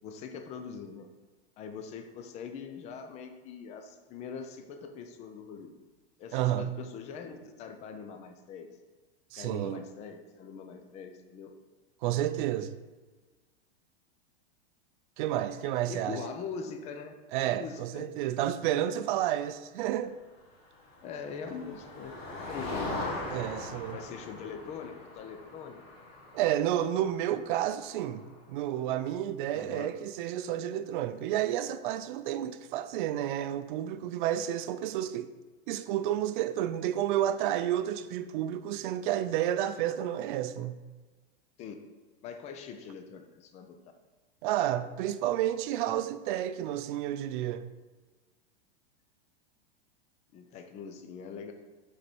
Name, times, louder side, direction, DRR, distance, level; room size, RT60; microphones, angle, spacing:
voice 1, 0.0-1.1 1.6-5.7 6.2-8.7 9.4-11.5 15.9-17.1 17.5-18.1 21.0-22.9 23.3-23.4 23.9-25.8 29.5-29.9 41.6-41.8 42.2-43.8 50.3-51.5, left 6 dB, 25° left, 0.4 m, -42 dB
voice 2, 6.3-6.7 9.3-9.8 12.0-12.7 15.2-16.2 17.3-20.1 23.3-24.0 26.3-35.3 35.7-40.8 44.4-47.6, right 12 dB, 55° right, 0.5 m, -30 dB
Motor vehicle (road), 20.7-28.5, left 2 dB, 90° left, 1.8 m, -41 dB
5.1 x 4.2 x 4.4 m
supercardioid pair, 145°, 30 cm